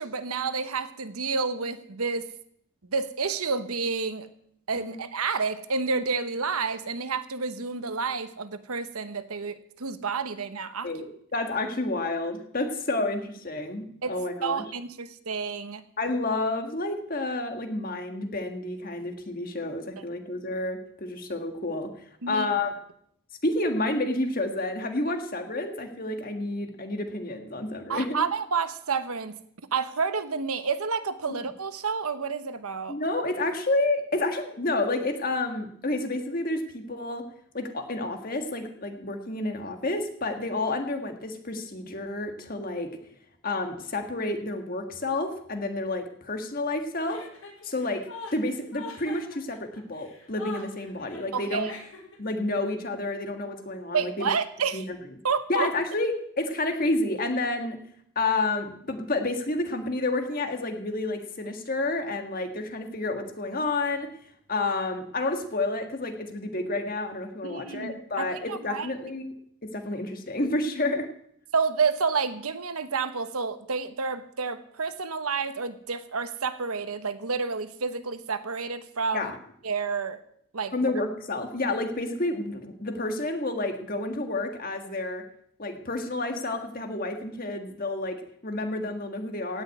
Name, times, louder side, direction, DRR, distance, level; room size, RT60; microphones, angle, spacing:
voice 1, 0.0-2.3 2.9-4.3 4.7-10.9 14.0-15.8 22.2-22.5 27.9-29.4 29.7-33.0 51.3-51.7 53.9-54.8 55.2-55.7 67.4-68.9 71.5-79.3 79.6-80.2 80.5-80.7, right 5 dB, 85° right, 11 dB, 1.1 m, -29 dB
voice 2, 10.8-14.6 16.0-21.9 22.3-22.7 23.4-28.3 31.3-31.4 32.9-37.3 37.5-42.9 43.4-47.2 47.6-51.7 52.2-54.3 54.7-54.8 55.5-57.8 58.2-64.1 64.5-69.3 69.6-71.1 79.1-79.4 80.7-85.2 85.6-89.6, left 2 dB, 40° left, 5 dB, 1.6 m, -30 dB
Chuckle chortle, 47.0-52.3, left 4 dB, 80° left, 5.5 m, -43 dB
16.5 x 6.3 x 9.2 m, 0.69 s
head